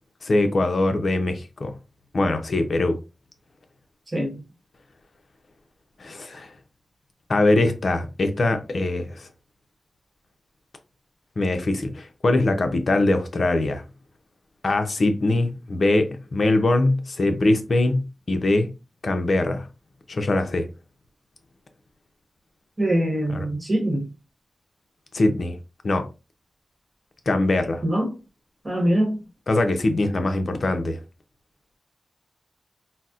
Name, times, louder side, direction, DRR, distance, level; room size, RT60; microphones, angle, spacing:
voice 1, 0.2-1.7 2.1-3.0 6.0-6.5 7.3-9.3 11.4-13.8 14.6-18.7 19.0-19.7 20.1-20.7 23.3-23.5 25.1-25.6 25.8-26.1 27.3-27.8 29.5-31.0, left 2 dB, 55° left, 0.5 m, -22 dB
voice 2, 22.8-24.0 27.8-28.2 28.6-29.2, right 1 dB, 20° right, 1.1 m, -23 dB
4.0 x 2.0 x 2.4 m
wide cardioid pair, 90°, 0 cm